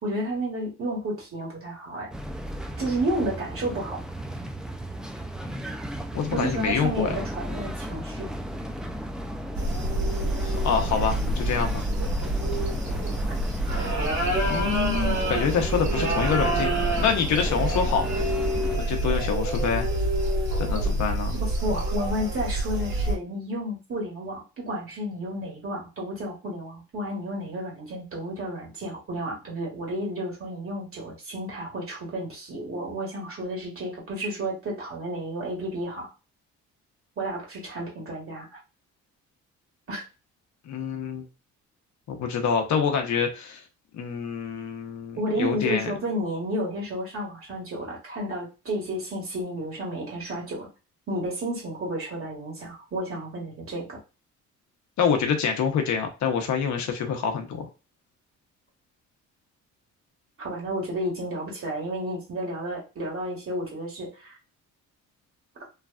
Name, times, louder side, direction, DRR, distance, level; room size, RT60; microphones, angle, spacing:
voice 1, 0.0-2.1 2.8-4.0 6.3-8.3 21.6-36.1 37.2-38.6 39.9-40.0 45.1-50.7 51.1-54.0 60.4-64.4, right 1 dB, 45° right, -2 dB, 1.7 m, -31 dB
sound 1, 2.1-18.8, equal, ahead, 0.3 m, -34 dB
voice 2, 6.1-7.2 10.4-11.8 14.5-18.3 18.8-19.9 20.6-21.3 40.7-41.2 42.1-43.6 43.9-45.9 55.0-57.7, left 6 dB, 70° left, 4 dB, 0.8 m, -26 dB
sound 2, 9.5-23.1, right 1 dB, 65° right, 1.5 m, -27 dB
3.2 x 2.3 x 2.3 m, 0.30 s
cardioid pair, 90°, 30 cm